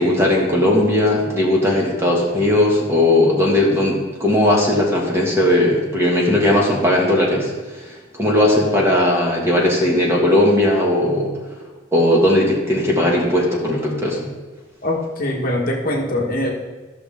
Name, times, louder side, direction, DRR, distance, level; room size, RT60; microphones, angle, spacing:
voice 1, 0.0-11.3 11.9-14.3, left 1 dB, 15° right, -2 dB, 1.5 m, -17 dB
voice 2, 14.8-16.5, left 1 dB, 45° left, -1 dB, 1.2 m, -22 dB
13.5 x 6.1 x 3.5 m, 1.3 s
head